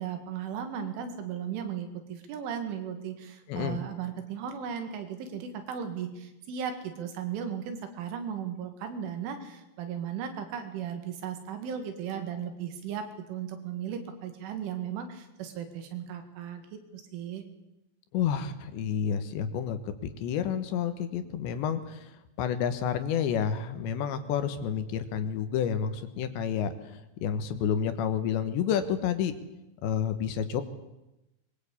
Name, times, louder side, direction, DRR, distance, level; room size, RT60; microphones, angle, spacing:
voice 1, 0.0-17.4, right 8 dB, 80° right, 7 dB, 4.5 m, -36 dB
voice 2, 18.1-19.8 20.2-22.1 22.4-26.7 27.2-29.3 29.8-30.6, left 8 dB, 75° left, 9 dB, 3.4 m, -29 dB
22.5 x 21.5 x 8.5 m, 0.95 s
omnidirectional pair, 5.5 m